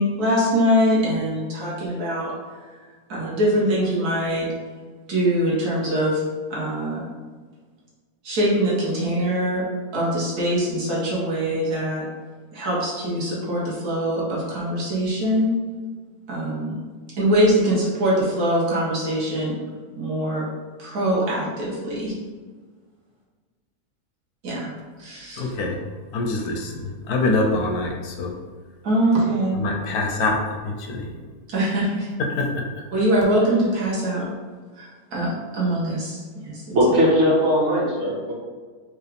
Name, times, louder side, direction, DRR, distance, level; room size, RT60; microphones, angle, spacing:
voice 1, 0.0-2.3 3.1-4.5 5.1-6.2 6.5-7.0 8.2-9.6 9.9-12.1 12.5-15.5 16.3-16.8 17.2-19.6 20.0-20.5 20.8-22.1 24.4-24.7 25.0-25.5 28.8-29.6 31.5-32.1 32.9-34.3 34.8-36.8, equal, 70° right, -6 dB, 1.6 m, -23 dB
voice 2, 25.4-25.8 26.1-28.3 29.6-30.4 30.6-31.1 32.4-32.5 32.7-32.8, left 2 dB, 80° left, 2 dB, 1.1 m, -24 dB
voice 3, 36.7-38.3, equal, 50° right, -6 dB, 1.3 m, -19 dB
4.7 x 2.4 x 3.3 m, 1.4 s
omnidirectional pair, 1.7 m